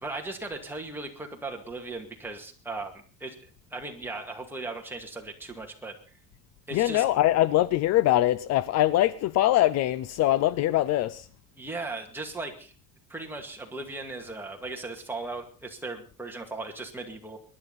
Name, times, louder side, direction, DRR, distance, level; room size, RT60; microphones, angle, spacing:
voice 1, 0.0-6.0 6.7-7.0 11.6-12.7 13.1-17.4, right 3 dB, 5° right, 2.2 m, -37 dB
voice 2, 6.7-11.3, left 14 dB, 50° left, 0.6 m, -23 dB
23.0 x 11.0 x 4.1 m
cardioid pair, 155°, 33 cm